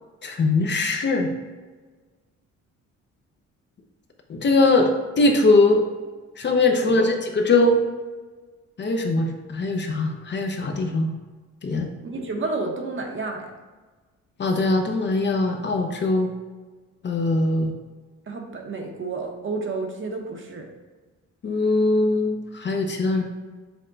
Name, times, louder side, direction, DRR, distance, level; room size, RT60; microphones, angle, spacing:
voice 1, 0.2-1.3 4.3-4.9 5.2-5.8 6.4-7.8 8.8-11.1 11.6-11.9 14.4-16.3 17.0-17.7 21.4-23.2, left 2 dB, 35° left, 3 dB, 0.6 m, -21 dB
voice 2, 6.7-7.0 12.0-13.5 18.3-20.7, right 3 dB, 40° right, 2 dB, 0.8 m, -31 dB
6.0 x 2.1 x 3.8 m, 1.3 s
cardioid pair, 90°, 30 cm